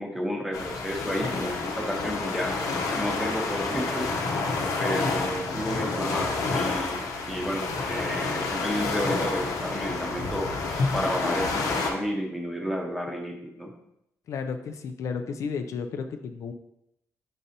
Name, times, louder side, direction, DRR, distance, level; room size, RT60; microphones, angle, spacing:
voice 1, 0.0-2.6 2.9-4.2 4.8-10.5 10.9-13.7, equal, ahead, 2 dB, 0.8 m, -31 dB
sound 1, 0.5-11.9, left 3 dB, 80° left, 0.8 m, -29 dB
voice 2, 14.3-16.5, left 5 dB, 60° left, 8 dB, 0.4 m, -33 dB
6.3 x 5.3 x 2.8 m, 0.80 s
wide cardioid pair, 160°, 6 cm